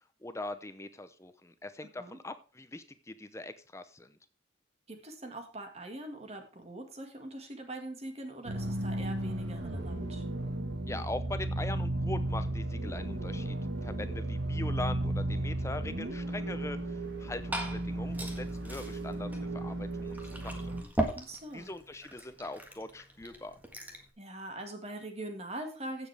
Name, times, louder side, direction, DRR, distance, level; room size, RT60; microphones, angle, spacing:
voice 1, 0.2-4.2 10.9-13.6 13.8-20.7 21.5-23.6, left 2 dB, 15° left, 10 dB, 0.7 m, -41 dB
voice 2, 4.9-10.3 21.2-21.7 24.2-26.1, right 1 dB, 35° right, 5 dB, 1.8 m, -42 dB
sound 1, 8.5-20.8, right 1 dB, 75° right, 1.5 m, -34 dB
Glass / Fill (with liquid), 17.0-24.1, right 1 dB, 10° right, 1.5 m, -40 dB
15.5 x 7.3 x 3.4 m, 0.36 s
head